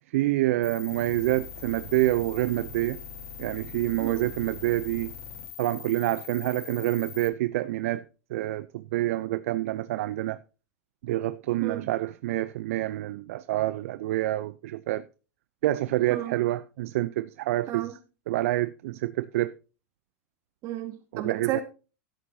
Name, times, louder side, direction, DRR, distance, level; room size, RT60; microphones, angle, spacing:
voice 1, 0.1-3.0 3.4-5.1 5.6-8.0 8.3-10.4 11.0-15.0 15.6-17.9 18.3-19.5 21.1-21.6, right 16 dB, 65° right, 0.6 m, -27 dB
sound 1, 0.6-7.3, left 8 dB, 55° left, 7.2 m, -42 dB
voice 2, 11.6-11.9 16.1-16.4 17.7-18.0 20.6-21.6, right 11 dB, 45° right, 3.0 m, -33 dB
13.0 x 11.5 x 2.8 m
hypercardioid pair, 105°, 8 cm